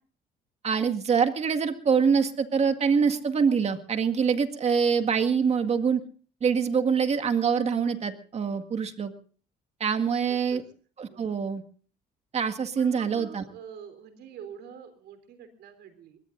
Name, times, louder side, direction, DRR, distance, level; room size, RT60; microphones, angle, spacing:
voice 1, 0.6-6.0 6.4-9.1 9.8-10.6 11.0-11.6 12.3-13.4, right 6 dB, 40° right, 7 dB, 1.9 m, -25 dB
voice 2, 10.3-10.6 11.1-11.3 12.8-16.2, right 8 dB, 75° right, 9 dB, 3.7 m, -46 dB
23.5 x 20.5 x 2.6 m, 0.41 s
cardioid pair, 110°, 17 cm